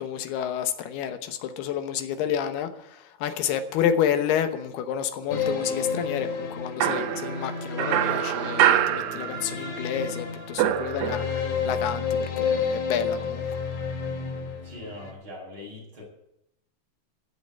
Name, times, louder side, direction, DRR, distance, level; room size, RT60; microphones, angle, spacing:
voice 1, 0.0-13.5, left 9 dB, 70° left, 9 dB, 2.7 m, -29 dB
sound 1, 5.3-15.1, left 5 dB, 50° left, 3.0 m, -31 dB
sound 2, 6.8-9.8 10.1-11.6, right 11 dB, 75° right, 2.8 m, -25 dB
voice 2, 14.6-16.0, left 1 dB, 25° right, -3 dB, 7.4 m, -41 dB
16.0 x 7.8 x 8.6 m, 0.81 s
omnidirectional pair, 5.4 m